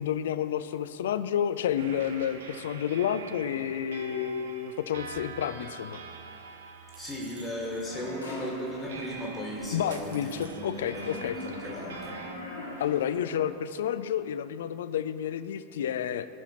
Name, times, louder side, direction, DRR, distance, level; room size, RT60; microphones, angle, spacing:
voice 1, 0.0-6.0 9.7-11.4 12.8-16.3, left 9 dB, 60° left, 13 dB, 0.3 m, -30 dB
sound 1, 1.8-12.4, right 5 dB, 60° right, 0.6 m, -46 dB
voice 2, 6.9-12.1, equal, 15° left, -3 dB, 1.5 m, -36 dB
sound 2, 7.8-13.6, left 1 dB, 85° left, 1.9 m, -42 dB
15.0 x 5.6 x 3.0 m, 3.0 s
figure-of-eight pair, 90°, 0 cm